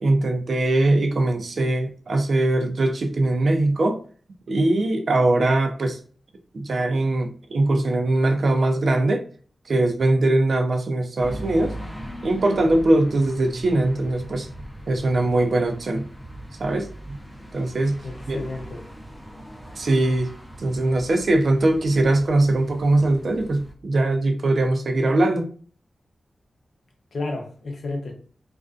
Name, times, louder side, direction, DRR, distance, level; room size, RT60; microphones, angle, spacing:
voice 1, 0.0-4.0 4.5-6.0 6.5-9.2 9.7-11.7 12.2-14.5 14.9-16.1 16.6-17.2 17.5-18.0 18.3-18.4 19.8-20.3 20.6-25.5, right 2 dB, 65° right, 0.5 m, -21 dB
sound 1, 11.2-23.7, right 1 dB, 15° left, 0.6 m, -39 dB
voice 2, 18.0-18.8 27.1-28.1, left 2 dB, 80° left, 0.7 m, -31 dB
2.5 x 2.2 x 2.4 m
wide cardioid pair, 85°, 0 cm